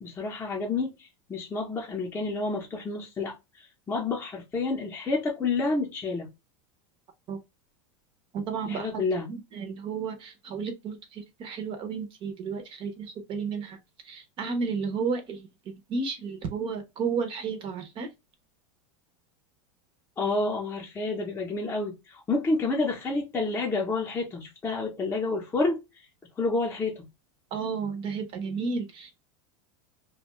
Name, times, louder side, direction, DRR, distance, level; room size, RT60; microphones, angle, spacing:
voice 1, 0.0-6.3 8.6-9.3 20.2-25.8 26.4-27.1, left 3 dB, 15° left, 0.7 m, -29 dB
voice 2, 8.3-9.0 9.3-13.8 14.0-18.1 27.5-29.2, right 5 dB, 30° right, 0.6 m, -32 dB
2.5 x 2.2 x 3.0 m
supercardioid pair, 150°, 16 cm